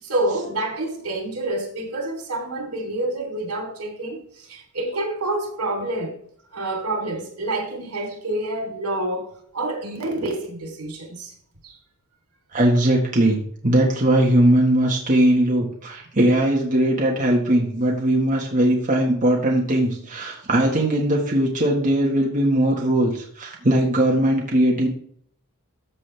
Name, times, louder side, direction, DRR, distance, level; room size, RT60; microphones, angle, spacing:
voice 1, 0.0-6.1 6.5-11.3 11.6-11.8, right 2 dB, 80° right, 3.5 m, -28 dB
voice 2, 12.5-24.9, right 1 dB, 35° right, 1.6 m, -19 dB
14.0 x 7.3 x 3.4 m
head